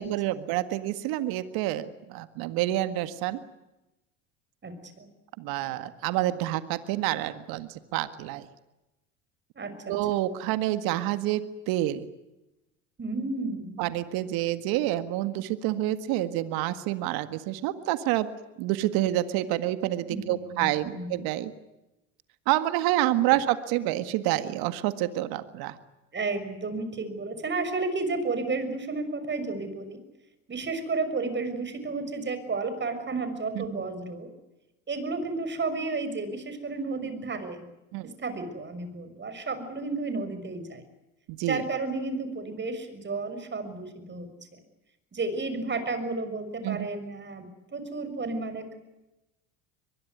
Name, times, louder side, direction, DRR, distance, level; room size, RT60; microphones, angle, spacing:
voice 1, 0.0-3.4 5.4-8.4 9.9-12.1 13.8-18.3 18.6-21.5 22.5-25.8 33.5-33.6 37.9-38.1 41.3-41.6 46.6-46.9, right 14 dB, 65° right, 11 dB, 1.9 m, -28 dB
voice 2, 4.6-5.1 9.6-9.9 13.0-13.9 20.1-21.1 23.3-23.4 26.1-30.0 30.5-34.3 34.9-37.7 38.0-40.8 41.5-44.3 45.1-48.8, right 3 dB, 30° right, 10 dB, 6.2 m, -32 dB
23.0 x 22.0 x 9.4 m, 0.98 s
hypercardioid pair, 80°, 38 cm